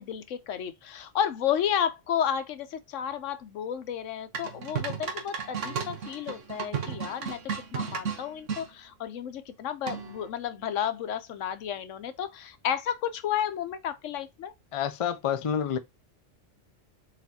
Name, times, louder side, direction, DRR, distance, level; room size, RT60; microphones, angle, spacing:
voice 1, 0.0-14.5, left 9 dB, 85° left, 1.1 m, -32 dB
sound 1, 4.3-8.6 9.9-10.3, right 6 dB, 85° right, 1.3 m, -34 dB
voice 2, 14.7-15.8, left 8 dB, 50° left, 0.4 m, -28 dB
4.2 x 4.1 x 2.7 m
omnidirectional pair, 1.2 m